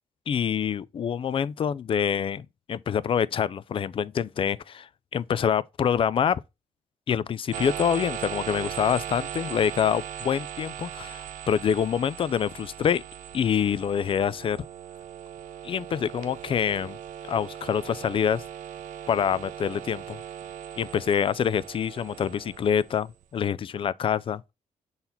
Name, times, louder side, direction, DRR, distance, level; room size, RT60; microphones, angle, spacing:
voice 1, 0.3-2.4 2.7-4.9 5.1-6.4 7.1-13.0 13.3-14.6 15.6-17.0 17.2-18.4 19.1-20.2 20.8-24.4, left 8 dB, 45° left, 0.3 m, -26 dB
sound 1, 7.5-23.2, right 10 dB, 90° right, 0.7 m, -39 dB
5.6 x 4.0 x 4.3 m
cardioid pair, 110°, 13 cm